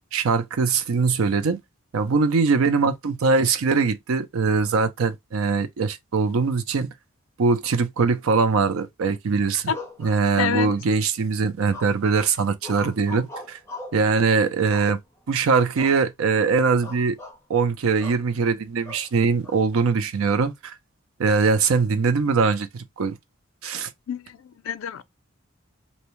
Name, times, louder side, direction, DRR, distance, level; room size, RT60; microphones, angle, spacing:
voice 1, 0.1-1.6 1.9-6.9 7.4-9.7 10.0-13.6 13.9-15.0 15.3-17.2 17.5-20.7 21.2-23.2 23.6-23.9, right 4 dB, 80° right, 0.5 m, -22 dB
sound 1, 9.7-10.7 11.7-12.2 12.6-14.1 14.7-15.3 15.8-16.0 16.3-16.5 16.8-17.4 18.0-18.3 18.9-19.6, left 2 dB, 10° left, 0.6 m, -40 dB
voice 2, 10.4-10.7 24.1-25.0, left 8 dB, 70° left, 0.4 m, -27 dB
2.7 x 2.1 x 3.0 m
head